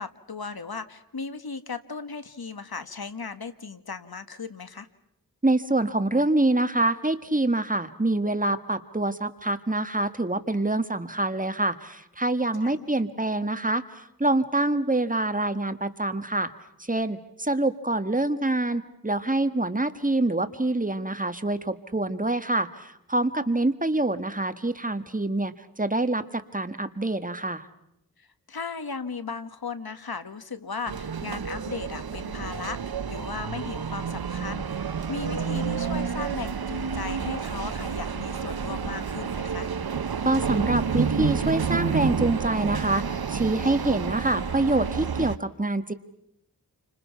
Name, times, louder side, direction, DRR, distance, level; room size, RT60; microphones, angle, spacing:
voice 1, 0.0-4.9 12.6-12.8 28.2-39.7, left 5 dB, 70° left, 11 dB, 1.5 m, -36 dB
voice 2, 5.4-16.5 16.9-27.7 40.2-45.9, right 2 dB, 20° right, 10 dB, 1.6 m, -26 dB
sound 1, 30.9-45.4, right 6 dB, 70° right, 0.9 m, -29 dB
29.0 x 25.5 x 5.8 m, 0.78 s
wide cardioid pair, 50°, 38 cm